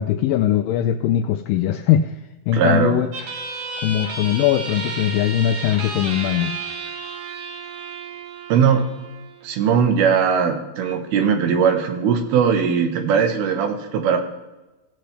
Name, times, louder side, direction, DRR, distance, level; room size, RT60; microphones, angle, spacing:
voice 1, 0.0-2.2 2.5-3.1 3.8-6.6, left 11 dB, 85° left, 7 dB, 1.9 m, -20 dB
voice 2, 2.5-3.0 8.5-8.9 9.4-14.2, right 7 dB, 80° right, 6 dB, 3.0 m, -19 dB
sound 1, 3.1-10.1, right 3 dB, 60° right, 2.6 m, -33 dB
17.5 x 7.8 x 3.3 m, 1.1 s
omnidirectional pair, 4.4 m